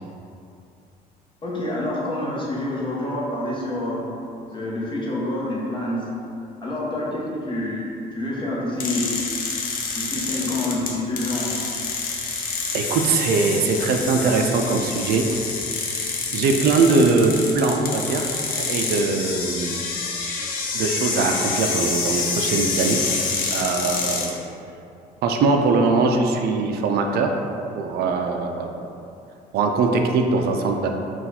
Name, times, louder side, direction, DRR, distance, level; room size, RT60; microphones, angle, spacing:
voice 1, 1.4-4.1 4.5-6.1 6.6-9.1 9.9-11.5 28.1-28.2, left 1 dB, 30° left, -5 dB, 1.0 m, -27 dB
sound 1, 8.8-24.3, left 4 dB, 60° left, 0.7 m, -27 dB
voice 2, 12.7-15.4 16.3-18.3 18.7-19.8 20.7-23.0 23.5-24.3 25.2-27.4 27.7-28.9 29.5-30.9, right 4 dB, 70° right, 3 dB, 0.4 m, -21 dB
4.0 x 2.4 x 4.1 m, 2.6 s
cardioid pair, 110°, 17 cm